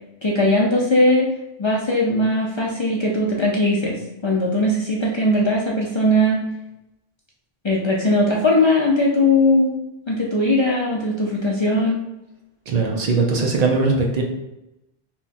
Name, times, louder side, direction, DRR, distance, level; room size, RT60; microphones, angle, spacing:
voice 1, 0.2-1.3 1.6-6.4 7.6-9.8 10.1-12.0, left 1 dB, 50° left, -4 dB, 0.3 m, -19 dB
voice 2, 12.7-14.2, right 3 dB, 45° right, 1 dB, 0.6 m, -20 dB
2.9 x 2.3 x 4.0 m, 0.92 s
omnidirectional pair, 1.0 m